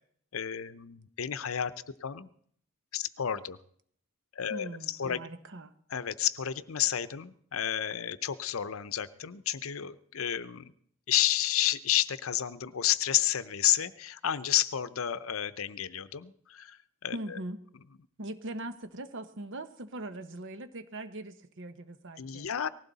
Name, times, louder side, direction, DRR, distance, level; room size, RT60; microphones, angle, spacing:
voice 1, 0.3-2.3 2.9-3.6 4.3-5.2 5.9-10.7 11.1-16.8 17.0-17.1 22.2-22.7, left 11 dB, 75° left, 14 dB, 0.7 m, -31 dB
voice 2, 4.5-5.7 17.1-17.6 18.2-22.5, right 1 dB, 60° right, 10 dB, 1.1 m, -41 dB
19.0 x 16.0 x 4.1 m, 0.64 s
head